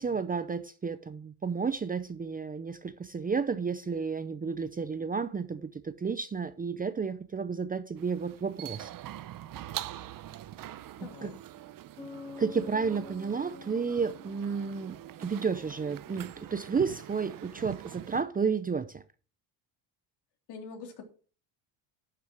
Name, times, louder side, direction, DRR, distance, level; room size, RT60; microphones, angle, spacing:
voice 1, 0.0-8.9 11.0-11.3 12.4-19.0, right 5 dB, 20° right, 0.6 m, -32 dB
sound 1, 8.0-18.2, right 13 dB, 45° right, 0.8 m, -44 dB
voice 2, 11.0-11.4 20.5-21.0, left 5 dB, 60° left, 3.4 m, -44 dB
Bass guitar, 12.0-15.6, left 4 dB, 10° left, 2.3 m, -48 dB
12.0 x 6.7 x 6.1 m
cardioid pair, 120°, 45 cm